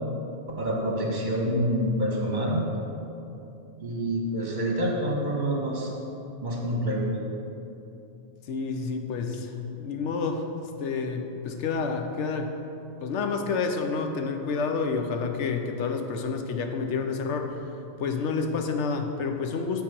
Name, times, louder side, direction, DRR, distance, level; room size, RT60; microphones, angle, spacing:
voice 1, 0.6-2.6 3.8-5.9 6.4-7.1, equal, 40° right, -2 dB, 1.4 m, -27 dB
voice 2, 8.5-10.4 10.8-12.5 13.0-17.6 18.0-19.8, left 4 dB, 90° left, 5 dB, 1.0 m, -29 dB
8.5 x 3.9 x 6.7 m, 2.8 s
omnidirectional pair, 1.2 m